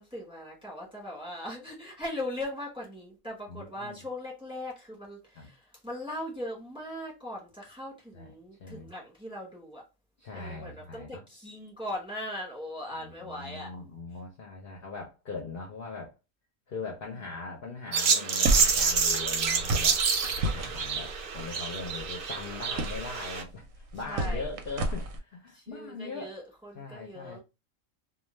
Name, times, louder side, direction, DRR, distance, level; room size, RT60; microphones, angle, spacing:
voice 1, 0.0-9.8 10.3-13.7 24.1-24.5 25.5-27.4, left 1 dB, 5° right, 1.0 m, -39 dB
voice 2, 3.5-4.0 5.4-5.5 8.1-8.3 8.6-8.9 10.2-11.2 12.9-16.1 16.7-20.0 20.4-26.3 26.7-27.4, left 4 dB, 55° left, 0.7 m, -40 dB
sound 1, 17.9-23.4, right 5 dB, 60° right, 0.6 m, -28 dB
sound 2, 18.4-25.2, right 2 dB, 85° right, 1.0 m, -33 dB
2.3 x 2.3 x 3.1 m
omnidirectional pair, 1.4 m